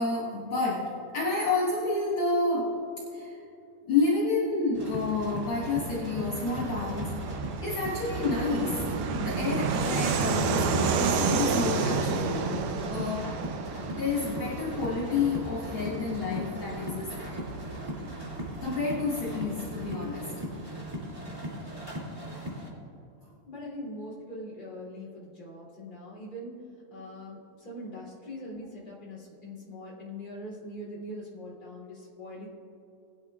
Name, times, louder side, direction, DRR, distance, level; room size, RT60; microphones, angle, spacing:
voice 1, 0.0-2.8 3.1-3.4 3.9-7.3 7.6-8.9 9.2-12.5 12.9-13.4 13.9-17.5 18.6-20.3, left 3 dB, 65° left, -6 dB, 1.3 m, -29 dB
sound 1, 4.7-22.7, equal, 15° right, 1.2 m, -39 dB
Fixed-wing aircraft airplane, 4.8-21.0, right 5 dB, 75° right, 2.0 m, -32 dB
voice 2, 21.0-21.5 22.2-22.7 23.5-26.6 26.9-32.5, left 1 dB, 15° left, -6 dB, 2.2 m, -42 dB
20.0 x 10.5 x 2.4 m, 3.0 s
omnidirectional pair, 4.4 m